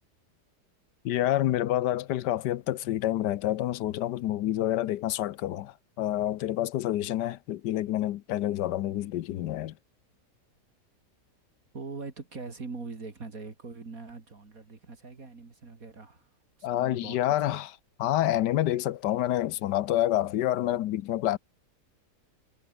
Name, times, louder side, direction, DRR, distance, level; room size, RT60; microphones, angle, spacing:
voice 1, 1.0-9.7 16.6-17.7 18.0-21.4, left 13 dB, 80° left, 1.3 m, -28 dB
voice 2, 11.7-16.3 16.6-17.6 18.2-18.3, right 4 dB, 55° right, 3.2 m, -42 dB
omnidirectional pair, 1.8 m